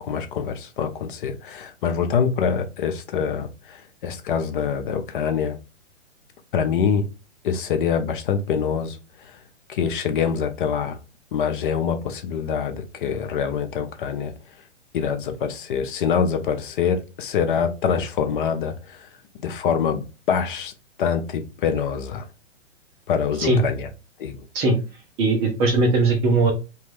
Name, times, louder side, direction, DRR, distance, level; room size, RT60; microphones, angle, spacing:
voice 1, 0.0-5.6 6.5-7.1 7.4-9.0 9.7-11.0 11.3-14.3 14.9-19.1 19.4-20.7 21.0-22.3 23.1-23.9 24.2-24.4, left 7 dB, 45° left, 0.5 m, -25 dB
voice 2, 25.2-26.5, right 3 dB, 15° right, 0.4 m, -19 dB
3.0 x 2.3 x 3.3 m
hypercardioid pair, 125°, 37 cm